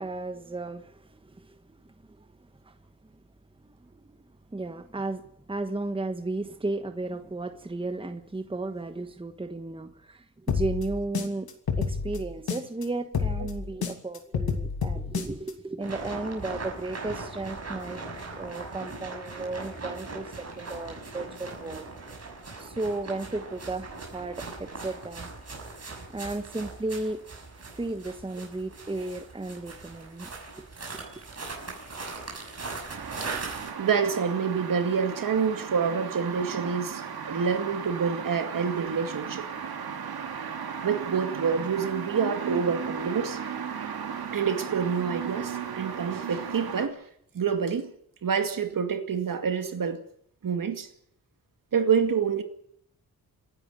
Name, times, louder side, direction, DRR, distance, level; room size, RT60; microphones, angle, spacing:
voice 1, 0.0-1.6 2.1-2.3 2.6-2.7 3.6-4.2 4.5-5.2 5.5-11.5 11.8-18.0 18.3-21.9 22.6-25.3 26.1-27.2 27.8-30.3 30.6-30.7, right 2 dB, 15° right, 1.3 m, -34 dB
sound 1, 10.5-12.8 13.1-15.5, left 6 dB, 80° left, 2.8 m, -29 dB
sound 2, 15.8-33.7, right 3 dB, 45° right, 6.6 m, -40 dB
sound 3, 32.9-46.9, right 7 dB, 85° right, 2.5 m, -36 dB
voice 2, 33.8-39.4 40.8-43.4 44.3-47.0 47.3-47.9 48.2-50.0 50.4-50.9 51.7-52.4, right 6 dB, 60° right, 2.4 m, -27 dB
28.5 x 11.0 x 9.1 m
wide cardioid pair, 125°, 36 cm